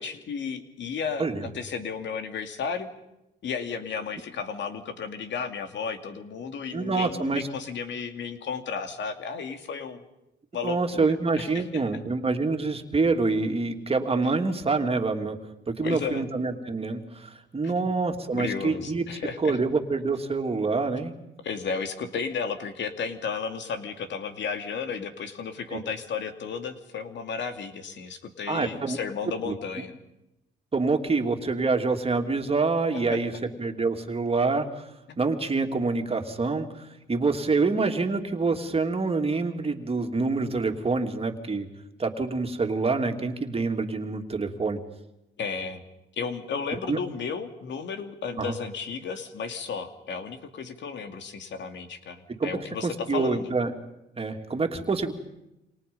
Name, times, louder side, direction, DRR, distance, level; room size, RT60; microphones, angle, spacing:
voice 1, 0.0-2.9 3.4-10.0 10.5-11.6 15.8-16.2 17.6-17.9 18.3-19.6 21.4-29.9 33.1-33.2 45.4-45.8 46.2-53.5, left 5 dB, 65° left, 7 dB, 2.6 m, -33 dB
voice 2, 6.7-7.5 10.6-15.4 15.7-19.0 19.4-21.1 25.7-25.8 28.5-29.0 29.5-29.6 30.7-33.3 33.6-34.9 35.2-41.7 42.0-44.8 46.8-47.0 48.4-48.5 52.4-52.5 52.8-53.7 54.2-55.1, right 3 dB, 30° right, 4 dB, 2.9 m, -26 dB
28.5 x 26.5 x 5.5 m, 0.89 s
cardioid pair, 90°, 20 cm